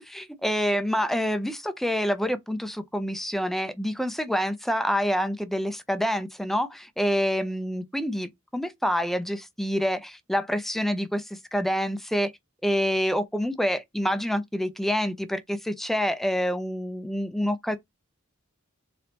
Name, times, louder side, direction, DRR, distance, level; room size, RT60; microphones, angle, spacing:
voice 1, 0.0-12.3 12.6-17.8, equal, ahead, 0.4 m, -27 dB
3.9 x 3.4 x 2.8 m
head